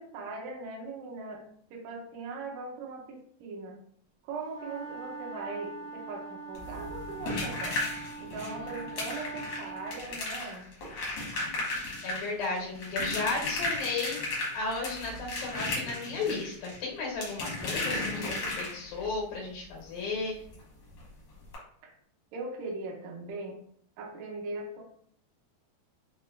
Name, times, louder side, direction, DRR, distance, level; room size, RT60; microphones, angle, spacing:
voice 1, 0.0-1.5 1.7-3.8 4.2-7.8 8.2-10.7 21.8-21.9 22.3-23.6 24.0-24.8, right 3 dB, 80° right, 0 dB, 2.0 m, -40 dB
sound 1, 4.5-10.0, right 3 dB, 60° right, 1.2 m, -42 dB
sound 2, 6.5-19.1 20.5-20.6 20.9-21.0 21.5-21.6, left 2 dB, 70° left, 1.3 m, -35 dB
voice 2, 8.5-9.1 12.0-14.2 14.5-20.3, left 3 dB, 90° left, -2 dB, 2.6 m, -34 dB
5.6 x 2.0 x 2.2 m, 0.64 s
omnidirectional pair, 4.0 m